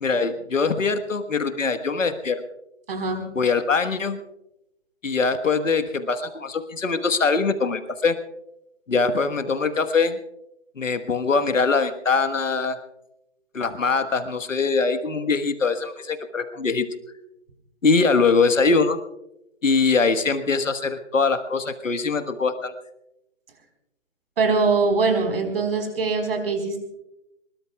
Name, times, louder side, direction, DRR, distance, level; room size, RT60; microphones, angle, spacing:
voice 1, 0.0-2.4 3.3-4.2 5.0-8.2 8.9-10.2 10.8-12.8 13.5-16.9 17.8-19.0 19.6-22.7, left 4 dB, 90° left, 8 dB, 1.5 m, -22 dB
voice 2, 2.9-3.3 24.4-26.8, right 4 dB, 50° right, 5 dB, 4.3 m, -22 dB
23.5 x 22.0 x 2.3 m, 0.87 s
hypercardioid pair, 160°, 37 cm